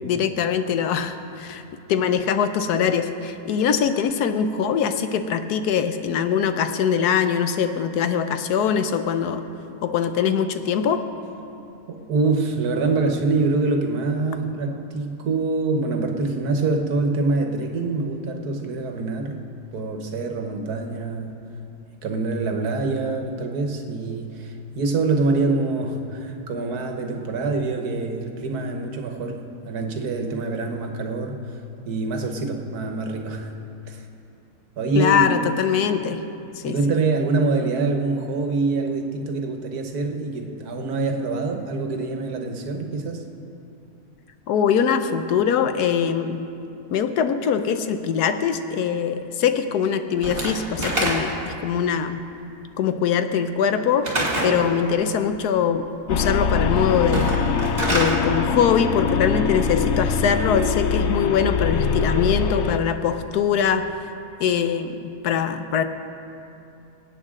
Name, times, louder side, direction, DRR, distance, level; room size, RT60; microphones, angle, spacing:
voice 1, 0.0-1.6 1.9-9.4 9.8-11.0 35.0-36.2 36.6-36.8 44.5-46.5 46.9-52.2 52.8-57.3 57.9-63.9 64.4-65.8, left 7 dB, 85° left, 9 dB, 1.2 m, -22 dB
voice 2, 11.9-19.4 19.7-21.3 22.0-31.4 31.9-33.5 33.9-34.0 34.8-35.4 36.7-43.2, right 3 dB, 80° right, 4 dB, 1.6 m, -25 dB
Slam / Wood, 50.2-51.5 54.0-54.6 57.0-58.2, right 1 dB, 40° right, 2.7 m, -25 dB
sound 1, 56.1-62.8, left 5 dB, 60° left, 0.8 m, -23 dB
23.0 x 8.8 x 3.7 m, 2.7 s
omnidirectional pair, 1.6 m